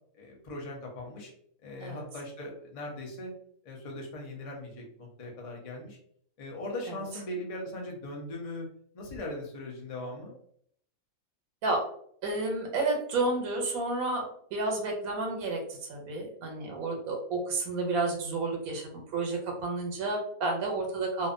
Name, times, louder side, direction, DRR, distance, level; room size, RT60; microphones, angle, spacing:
voice 1, 0.1-1.3 1.6-3.3 3.6-6.0 6.4-8.7 8.9-10.3, left 1 dB, 55° left, 0 dB, 0.4 m, -39 dB
voice 2, 12.2-14.2 14.5-21.3, right 2 dB, 85° right, 1 dB, 1.1 m, -31 dB
2.5 x 2.1 x 2.5 m, 0.64 s
omnidirectional pair, 1.5 m